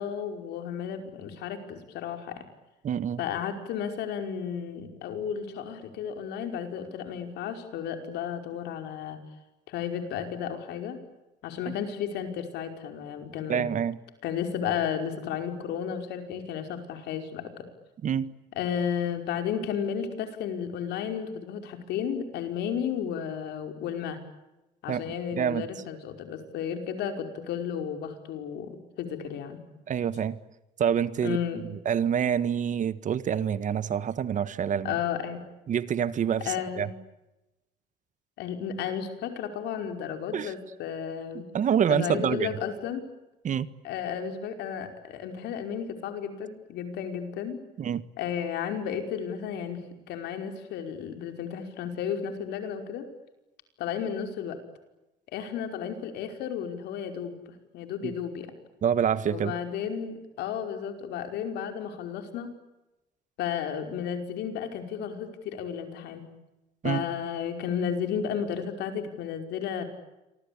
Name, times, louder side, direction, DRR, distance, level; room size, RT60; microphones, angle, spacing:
voice 1, 0.0-2.4 3.2-9.2 9.7-11.0 11.4-13.7 14.2-17.7 18.6-24.2 24.8-29.6 31.2-31.6 34.8-35.4 36.5-37.0 38.4-41.4 41.9-43.0 43.8-47.6 48.2-53.1 53.8-54.6 55.3-58.5 59.3-62.5 63.4-66.3 66.8-69.8, left 8 dB, 80° left, 5.3 m, -33 dB
voice 2, 2.8-3.2 13.5-14.0 18.0-18.3 24.9-25.0 25.3-25.7 29.9-30.4 30.8-31.4 31.8-35.0 35.7-36.9 40.3-40.5 41.5-42.5 43.4-43.7 47.8-48.0 58.0-58.1 58.8-59.5 66.8-67.0, right 8 dB, 50° right, 1.6 m, -26 dB
28.5 x 24.0 x 8.7 m
cardioid pair, 110°, 17 cm